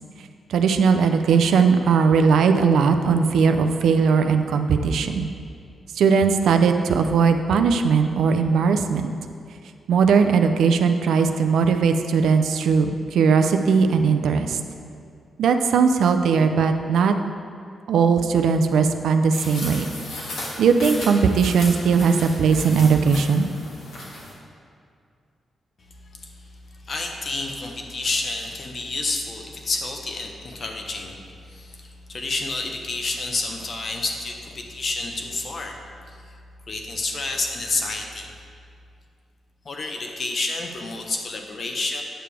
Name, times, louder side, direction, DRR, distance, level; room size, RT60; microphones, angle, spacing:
voice 1, 0.5-5.3 5.9-9.1 9.9-14.6 15.4-17.1 17.9-19.9 20.6-23.5, right 5 dB, 90° right, 7 dB, 0.4 m, -19 dB
sound 1, 19.3-24.3, left 1 dB, 85° left, 1.7 m, -35 dB
voice 2, 26.9-31.2 31.5-35.8 36.7-38.3 39.6-42.0, left 3 dB, 45° left, 2 dB, 0.9 m, -29 dB
8.8 x 6.7 x 3.4 m, 2.3 s
cardioid pair, 110°, 0 cm